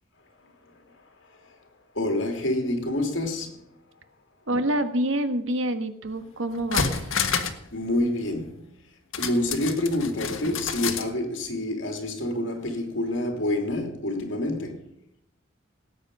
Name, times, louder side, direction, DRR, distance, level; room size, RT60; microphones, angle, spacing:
voice 1, 0.4-1.7 1.9-3.7 7.7-8.7 9.2-14.9, left 1 dB, 65° left, 3.1 m, -28 dB
voice 2, 4.5-7.1, right 1 dB, 75° right, 1.5 m, -27 dB
sound 1, 6.1-6.2 6.5-7.7 7.9-8.0 9.1-11.1 11.4-11.5, left 6 dB, 85° left, 1.6 m, -29 dB
18.5 x 9.2 x 5.5 m
head